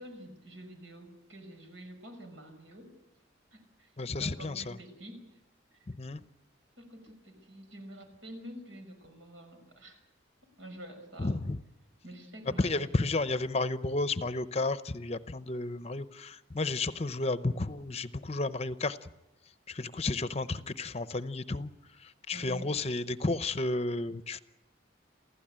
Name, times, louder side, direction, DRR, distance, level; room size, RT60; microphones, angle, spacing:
voice 1, 0.0-2.9 3.5-3.9 4.2-5.3 6.8-10.0 10.6-11.4 12.0-13.0 22.3-22.7, right 1 dB, 80° right, 6 dB, 6.0 m, -47 dB
voice 2, 4.0-4.8 5.9-6.2 11.2-11.6 12.6-19.1 19.7-21.7 22.0-24.4, left 2 dB, 35° left, 13 dB, 0.7 m, -32 dB
28.5 x 15.5 x 8.9 m, 0.98 s
head